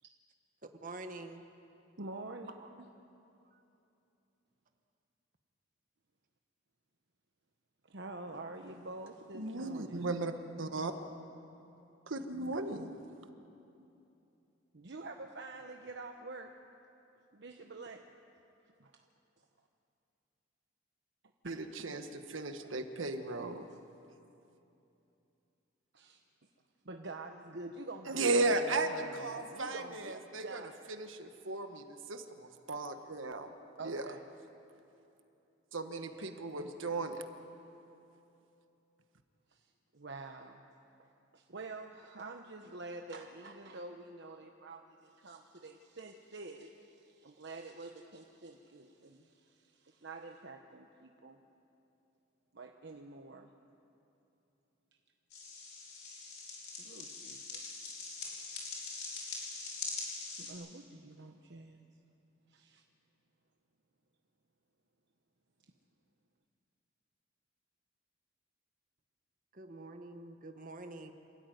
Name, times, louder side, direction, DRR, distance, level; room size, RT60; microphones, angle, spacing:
voice 1, 0.6-1.5 2.6-2.7 3.4-3.6 69.5-71.1, right 2 dB, 45° right, 6 dB, 1.3 m, -47 dB
voice 2, 2.0-2.5 7.8-10.0 14.7-16.5 17.3-18.0 18.8-19.0 21.4-21.9 22.6-22.7 23.7-23.8 25.9-26.2 26.8-30.7 33.8-34.2 36.0-36.7 39.5-40.6 41.0-51.4 52.5-53.5 56.8-57.8 59.4-59.8 60.4-61.9 62.5-62.8, right 2 dB, 60° right, 4 dB, 1.0 m, -48 dB
voice 3, 9.3-10.3 10.6-10.9 12.1-12.9 21.4-23.7 28.1-30.6 31.0-33.5 33.8-34.0 35.7-37.2, right 2 dB, 90° right, 7 dB, 1.4 m, -35 dB
sound 1, 55.3-60.5, left 4 dB, 55° left, 4.7 m, -43 dB
27.5 x 13.5 x 9.4 m, 2.8 s
head